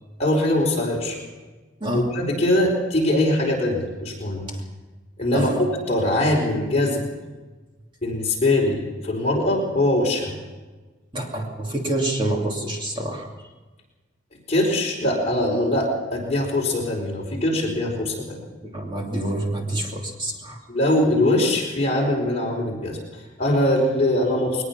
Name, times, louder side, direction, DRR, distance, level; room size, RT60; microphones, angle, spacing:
voice 1, 0.2-1.2 1.9-4.5 5.2-5.5 5.9-7.0 8.0-10.4 14.5-18.4 20.7-24.6, left 1 dB, 35° left, -1 dB, 4.6 m, -22 dB
voice 2, 1.8-2.1 4.5-4.6 5.3-5.6 11.1-13.3 18.6-20.6, right 1 dB, 25° right, 0 dB, 2.7 m, -27 dB
21.5 x 20.0 x 6.0 m, 1.3 s
head